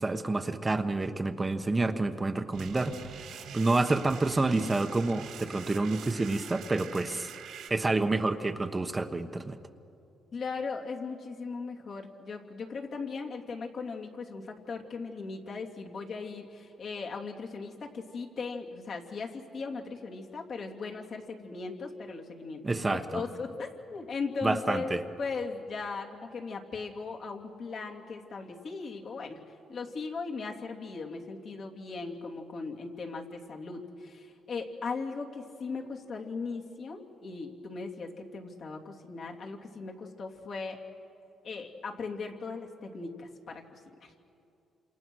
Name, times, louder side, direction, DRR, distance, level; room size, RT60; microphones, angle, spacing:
voice 1, 0.0-7.3 7.7-9.6 22.6-23.2 24.4-25.0, right 2 dB, 20° right, 7 dB, 1.2 m, -28 dB
sound 1, 2.5-7.7, right 7 dB, 85° right, 3.3 m, -45 dB
voice 2, 10.3-29.4 29.7-40.8 41.4-44.1, left 4 dB, 55° left, 0 dB, 3.0 m, -38 dB
28.0 x 27.5 x 6.3 m, 2.6 s
cardioid pair, 90°, 0 cm